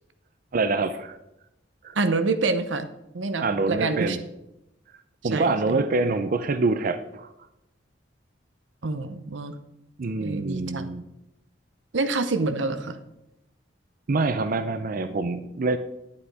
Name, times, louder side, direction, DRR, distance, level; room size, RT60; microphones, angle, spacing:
voice 1, 0.5-1.2 1.8-2.0 3.4-4.2 5.2-7.3 10.0-11.0 14.1-15.8, right 3 dB, 50° right, 10 dB, 0.5 m, -25 dB
voice 2, 2.0-2.9 3.1-4.2 5.3-5.9 8.8-9.5 10.2-10.9 11.9-13.0, right 3 dB, 90° right, 10 dB, 0.8 m, -27 dB
10.0 x 8.5 x 4.8 m, 0.88 s
head